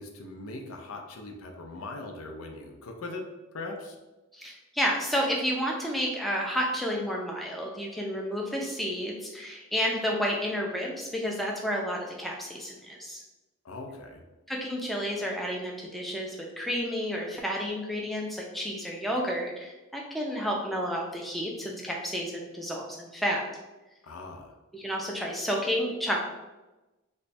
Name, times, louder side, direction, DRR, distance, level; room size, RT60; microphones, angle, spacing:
voice 1, 0.0-3.2 3.5-4.0 13.6-14.2 24.0-24.6, left 2 dB, 80° left, 3 dB, 0.6 m, -40 dB
voice 2, 4.3-13.2 14.5-23.5 24.7-26.3, equal, ahead, -1 dB, 0.4 m, -31 dB
3.2 x 2.2 x 4.1 m, 1.1 s
head